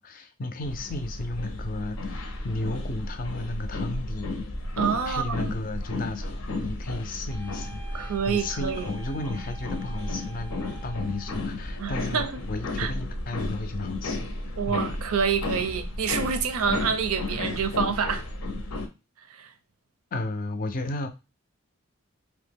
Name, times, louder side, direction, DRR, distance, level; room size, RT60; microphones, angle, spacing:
voice 1, 0.0-4.3 5.0-14.2 14.5-14.9 20.1-21.1, left 2 dB, 40° left, 0.4 m, -34 dB
sound 1, 0.6-18.9, left 2 dB, 80° left, 0.6 m, -33 dB
voice 2, 4.8-5.5 7.9-8.9 11.8-12.3 12.8-12.9 14.6-18.3 19.3-19.5, right 6 dB, 80° right, 0.5 m, -27 dB
sound 2, 7.3-11.5, right 5 dB, 25° right, 0.5 m, -48 dB
2.7 x 2.1 x 3.4 m
head